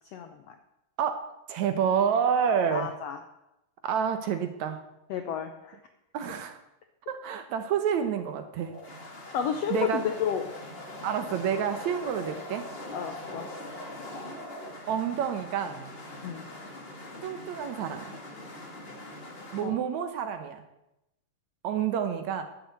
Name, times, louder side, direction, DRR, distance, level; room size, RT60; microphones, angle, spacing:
voice 1, 0.1-0.5 2.7-3.2 5.1-5.8 9.3-10.4 12.9-13.5 16.2-16.5 19.6-19.7, left 8 dB, 75° left, 6 dB, 1.4 m, -31 dB
voice 2, 1.0-2.9 3.8-4.8 6.1-6.6 7.1-8.8 9.7-10.0 11.0-12.7 14.9-15.9 17.2-18.1 19.5-20.6 21.6-22.5, right 7 dB, 70° right, 8 dB, 2.0 m, -28 dB
sound 1, 8.6-19.7, left 1 dB, 25° left, 1.3 m, -42 dB
10.0 x 8.7 x 8.0 m, 0.90 s
omnidirectional pair, 3.8 m